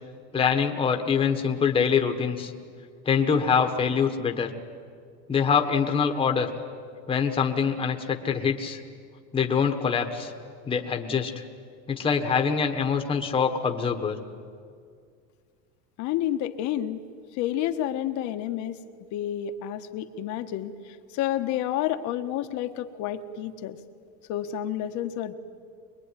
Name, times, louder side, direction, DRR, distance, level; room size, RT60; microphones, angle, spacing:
voice 1, 0.3-2.5 3.0-4.5 5.3-6.5 7.1-8.8 9.3-10.3 10.7-11.4 11.9-14.2, left 6 dB, 15° left, 4 dB, 1.4 m, -24 dB
voice 2, 16.0-17.0 17.3-18.8 19.1-23.8 24.3-25.3, left 11 dB, 45° left, 8 dB, 1.3 m, -30 dB
24.5 x 21.5 x 9.9 m, 2.1 s
supercardioid pair, 160°, 41 cm